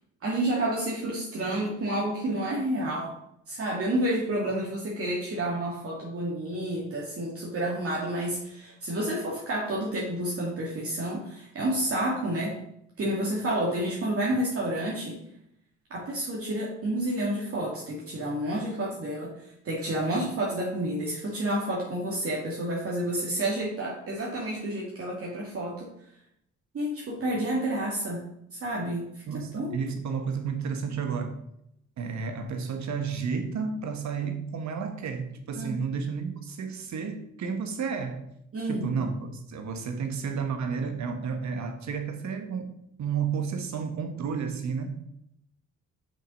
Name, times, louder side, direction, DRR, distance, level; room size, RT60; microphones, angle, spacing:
voice 1, 0.2-3.1 3.5-12.6 13.0-15.2 15.9-19.3 19.6-25.9 26.7-28.2 28.5-29.8 35.6-35.8 38.5-39.0, right 1 dB, 50° right, -4 dB, 2.2 m, -30 dB
voice 2, 29.3-31.4 32.0-38.2 38.6-42.7 43.0-45.0, right 6 dB, 65° right, 7 dB, 1.4 m, -32 dB
6.1 x 5.8 x 5.4 m, 0.76 s
cardioid pair, 90°, 30 cm